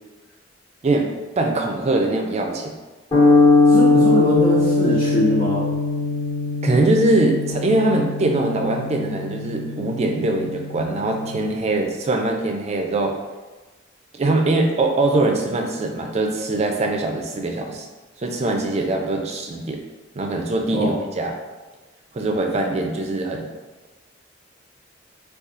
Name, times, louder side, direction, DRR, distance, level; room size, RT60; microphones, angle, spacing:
voice 1, 1.4-2.7 6.6-13.1 14.2-17.9 18.2-19.8 20.2-21.4 22.1-23.5, right 2 dB, 35° right, 3 dB, 0.4 m, -22 dB
sound 1, 3.1-11.5, left 3 dB, 25° left, 1.0 m, -20 dB
voice 2, 3.7-5.6 20.7-21.0, left 1 dB, 65° left, -12 dB, 0.9 m, -21 dB
4.0 x 2.4 x 2.5 m, 1.2 s
head